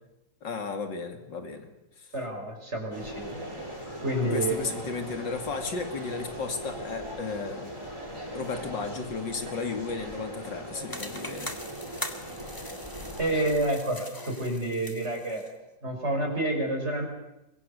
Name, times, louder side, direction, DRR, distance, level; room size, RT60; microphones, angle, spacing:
voice 1, 0.4-1.7 2.0-2.1 4.3-7.6 8.3-11.5, left 4 dB, 80° left, 5 dB, 3.1 m, -34 dB
voice 2, 2.1-3.4 4.0-4.6 9.5-9.6 13.2-15.4 15.8-17.1, right 1 dB, 35° right, 3 dB, 5.4 m, -29 dB
sound 1, 2.9-13.6, right 1 dB, 15° right, 7.5 m, -40 dB
sound 2, 10.9-15.5, left 1 dB, 10° left, 1.9 m, -41 dB
23.5 x 23.0 x 6.9 m, 0.93 s
omnidirectional pair, 2.0 m